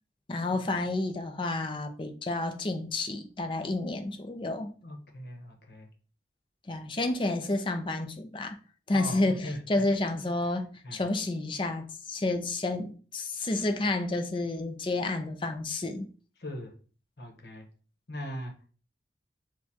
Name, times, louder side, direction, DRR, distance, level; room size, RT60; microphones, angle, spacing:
voice 1, 0.3-4.7 6.7-8.6 8.9-16.1, left 2 dB, 30° left, 0.5 m, -30 dB
voice 2, 4.8-5.9 8.9-9.6 10.8-11.0 16.4-16.7 17.2-17.7 18.1-18.5, equal, 65° left, 1.0 m, -39 dB
6.4 x 2.3 x 2.8 m
head